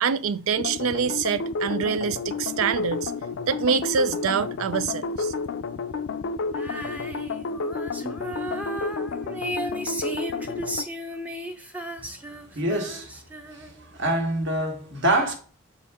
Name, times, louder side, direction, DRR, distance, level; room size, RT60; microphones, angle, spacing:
voice 1, 0.0-3.1 3.5-5.3, right 6 dB, 80° right, 0.4 m, -25 dB
sound 1, 0.6-10.8, left 4 dB, 65° left, 0.4 m, -31 dB
Female singing, 6.5-13.9, right 1 dB, 5° right, 0.6 m, -35 dB
voice 2, 12.5-13.2 13.5-15.3, right 1 dB, 60° right, 1.4 m, -26 dB
7.1 x 4.4 x 3.5 m
head